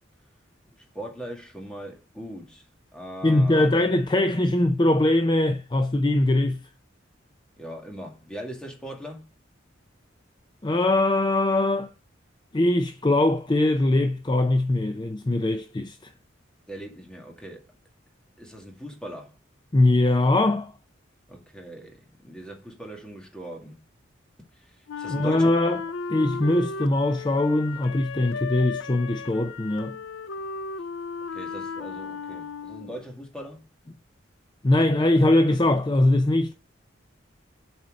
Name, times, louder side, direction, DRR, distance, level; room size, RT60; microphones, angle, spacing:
voice 1, 0.8-3.7 7.6-9.3 16.7-17.7 18.4-19.4 21.3-23.8 24.6-25.6 31.3-33.7, right 1 dB, 5° left, 2.0 m, -40 dB
voice 2, 3.2-6.6 10.6-11.9 12.5-16.0 19.7-20.7 25.1-25.8 26.1-30.0 34.6-36.5, left 2 dB, 25° left, 0.5 m, -21 dB
Wind instrument woodwind instrument, 24.9-33.1, left 5 dB, 90° left, 0.6 m, -35 dB
7.6 x 4.4 x 6.4 m
head